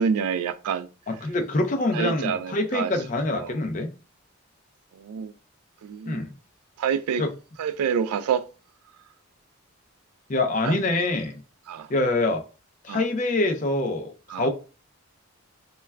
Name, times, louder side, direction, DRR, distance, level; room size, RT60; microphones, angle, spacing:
voice 1, 0.0-0.9 1.9-2.9 5.0-5.3 5.8-6.2 6.8-7.2 7.6-8.4 10.6-10.7 11.7-11.9 12.9-13.0 14.3-14.5, right 7 dB, 90° right, 0.3 m, -27 dB
voice 2, 1.1-3.9 6.1-6.3 7.2-7.3 10.3-11.4 11.9-12.4 12.8-14.5, left 2 dB, 35° left, 0.4 m, -25 dB
2.3 x 2.2 x 3.2 m
head